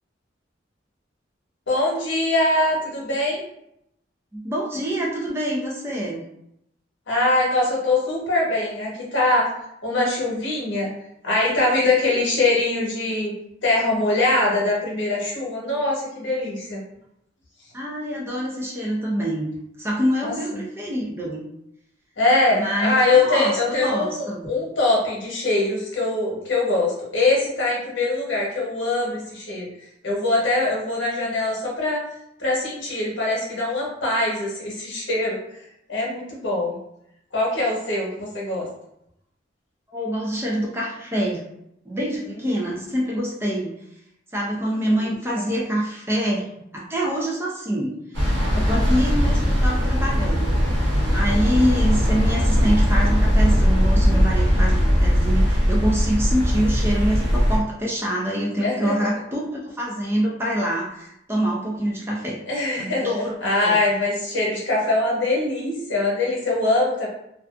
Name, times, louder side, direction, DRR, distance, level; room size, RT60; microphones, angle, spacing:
voice 1, 1.7-3.4 7.1-9.5 9.8-10.9 11.2-13.3 13.6-16.8 20.5-20.6 22.2-29.7 30.0-32.0 32.4-35.4 35.9-36.7 37.3-38.7 48.5-48.9 58.6-59.1 62.5-63.1 63.4-67.1, left 2 dB, 80° left, -4 dB, 1.0 m, -22 dB
voice 2, 4.3-6.2 17.7-19.5 19.8-21.4 22.5-24.5 39.9-41.4 41.9-43.7 44.3-48.0 48.5-50.6 51.1-62.4 62.8-63.4 63.6-63.8, equal, 15° right, -3 dB, 0.4 m, -25 dB
sound 1, 48.1-57.6, equal, 80° right, 0.8 m, -19 dB
2.5 x 2.3 x 2.4 m, 0.78 s
head